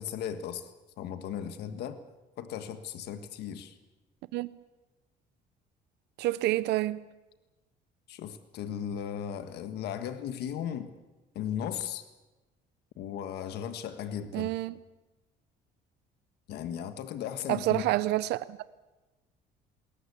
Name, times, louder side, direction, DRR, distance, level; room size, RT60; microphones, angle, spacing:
voice 1, 0.0-2.0 2.4-3.8 8.1-10.9 11.3-12.1 13.0-14.5 16.5-17.8, left 9 dB, 75° left, 1.5 m, -36 dB
voice 2, 6.2-7.1 14.3-14.7 17.5-18.7, right 16 dB, 85° right, 0.7 m, -28 dB
21.0 x 18.5 x 8.3 m
cardioid pair, 110°, 17 cm